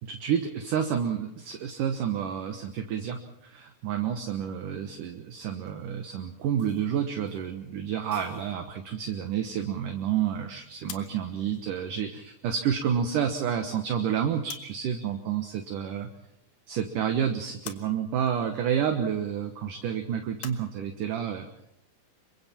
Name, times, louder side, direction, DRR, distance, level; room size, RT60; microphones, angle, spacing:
voice 1, 0.0-16.1 16.7-21.5, right 8 dB, 65° right, 5 dB, 2.3 m, -29 dB
sound 1, 5.7-5.8 6.6-7.4 7.7-7.8 8.1-8.5, right 2 dB, 20° right, 4.4 m, -53 dB
sound 2, 10.9-14.9 15.2-16.3 16.6-20.6, left 10 dB, 65° left, 2.6 m, -48 dB
28.0 x 23.5 x 4.4 m, 0.79 s
omnidirectional pair, 5.1 m